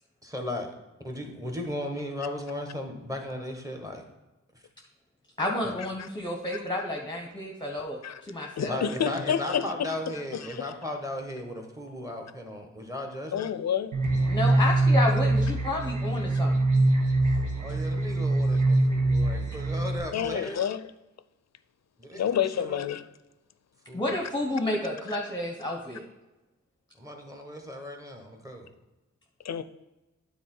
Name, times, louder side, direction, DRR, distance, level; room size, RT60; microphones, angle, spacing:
voice 1, 0.2-0.7 1.0-4.0 4.5-4.6 5.6-5.8 8.7-13.5 17.6-20.6 22.0-22.8 23.9-24.0 27.0-28.7, left 1 dB, 10° right, 1.4 m, -36 dB
voice 2, 5.4-8.8 14.3-16.7 23.9-26.0, left 1 dB, 15° left, 1.0 m, -31 dB
voice 3, 8.6-9.9 10.3-10.7 13.3-13.9 20.1-20.9 22.1-23.0 25.1-25.2 29.4-29.6, left 8 dB, 60° left, 0.5 m, -29 dB
sound 1, 13.9-20.0, right 2 dB, 85° right, 1.3 m, -24 dB
9.1 x 4.0 x 4.5 m
wide cardioid pair, 80°, 30 cm